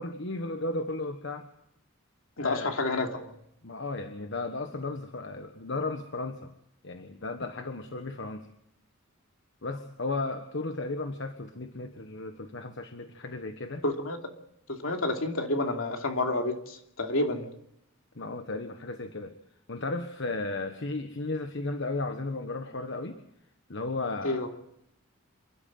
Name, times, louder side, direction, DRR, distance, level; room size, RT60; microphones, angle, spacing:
voice 1, 0.0-1.5 2.4-2.7 3.6-6.5 6.8-8.5 9.6-13.8 18.2-19.3 19.7-23.2 23.7-24.6, left 2 dB, 60° left, 7 dB, 1.3 m, -34 dB
voice 2, 2.4-3.3 13.8-14.2 14.7-17.5 24.2-24.5, left 2 dB, 75° left, 3 dB, 2.9 m, -29 dB
28.0 x 12.5 x 7.7 m, 0.77 s
head